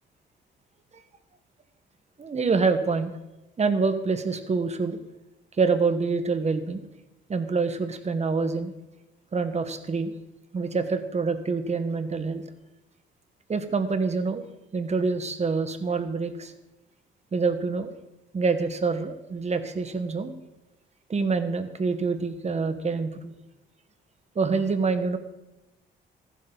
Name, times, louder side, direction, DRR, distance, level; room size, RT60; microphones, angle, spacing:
voice 1, 2.2-3.1 3.6-5.0 5.6-6.8 7.3-8.7 9.3-10.1 10.5-12.4 13.5-14.5 14.7-16.5 17.3-17.9 18.3-20.3 21.1-23.3 24.3-25.2, right 4 dB, 35° right, 9 dB, 1.3 m, -26 dB
14.5 x 11.5 x 4.0 m, 0.98 s
cardioid pair, 90°, 20 cm